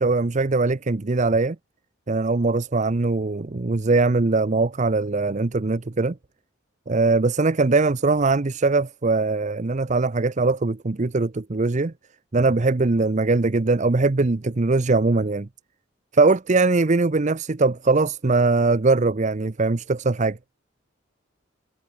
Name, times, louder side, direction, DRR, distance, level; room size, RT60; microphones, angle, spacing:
voice 1, 0.0-1.6 2.1-6.2 6.9-11.9 12.3-15.5 16.1-20.4, right 3 dB, 35° right, 0.6 m, -21 dB
head